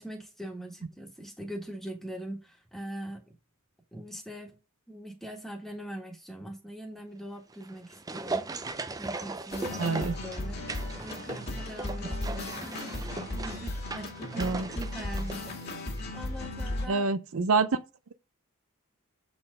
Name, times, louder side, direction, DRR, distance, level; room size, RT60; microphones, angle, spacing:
voice 1, 0.0-3.3 3.9-4.6 4.9-8.5 9.0-10.7 11.0-15.6 16.1-17.1, right 1 dB, ahead, 1.7 m, -42 dB
sound 1, 7.5-16.1 16.4-16.5, right 3 dB, 15° right, 0.4 m, -38 dB
sound 2, 9.5-16.9, left 2 dB, 45° left, 2.0 m, -36 dB
voice 2, 9.8-10.2 14.4-14.7 16.9-17.7, right 4 dB, 65° right, 0.5 m, -26 dB
7.7 x 4.4 x 5.3 m
head